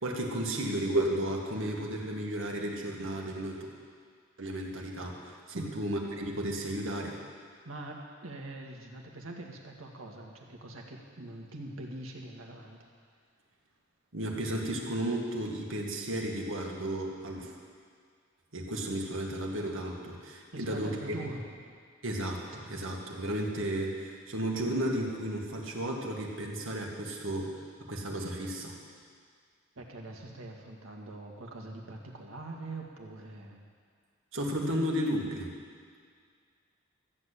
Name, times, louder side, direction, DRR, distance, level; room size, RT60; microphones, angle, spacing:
voice 1, 0.0-3.7 4.4-7.2 14.1-17.5 18.5-21.1 22.0-28.8 34.3-35.5, right 1 dB, 70° right, -1 dB, 2.0 m, -33 dB
voice 2, 7.6-12.9 20.5-21.4 29.8-33.6, right 2 dB, 85° right, 0 dB, 1.9 m, -43 dB
14.0 x 8.0 x 8.4 m, 2.1 s
head